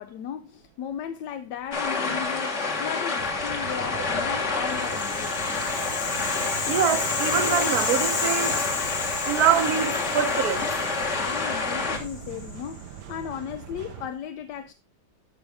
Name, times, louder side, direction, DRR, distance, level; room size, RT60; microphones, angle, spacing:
voice 1, 0.0-5.5 11.2-14.7, left 9 dB, 70° left, 1.1 m, -36 dB
sound 1, 1.7-12.0, left 4 dB, 40° left, 1.6 m, -28 dB
sound 2, 3.2-14.1, right 10 dB, 80° right, 1.4 m, -41 dB
Rattle (instrument), 4.6-12.8, left 5 dB, 90° left, 2.4 m, -32 dB
voice 2, 6.7-8.5 9.2-10.7, right 8 dB, 60° right, 1.2 m, -24 dB
12.5 x 5.4 x 3.3 m
omnidirectional pair, 2.1 m